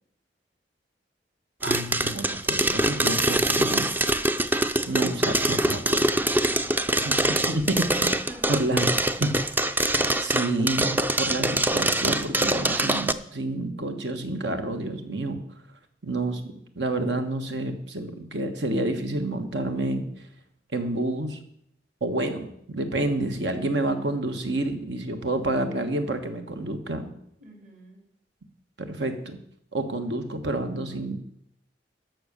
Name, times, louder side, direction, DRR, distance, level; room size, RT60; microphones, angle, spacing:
sound 1, 1.6-13.1, right 1 dB, 10° right, 0.4 m, -24 dB
voice 1, 1.6-3.9 4.8-6.2 7.0-8.2 8.5-8.9 9.2-9.3 9.8-15.4 16.0-16.4 16.8-20.1 20.7-21.4 22.0-27.1 28.8-29.4 29.7-31.2, right 2 dB, 75° right, 7 dB, 1.4 m, -29 dB
voice 2, 6.5-7.4 8.2-9.2 27.4-28.0, right 1 dB, 50° right, 1 dB, 2.7 m, -45 dB
12.5 x 6.2 x 6.8 m, 0.72 s
head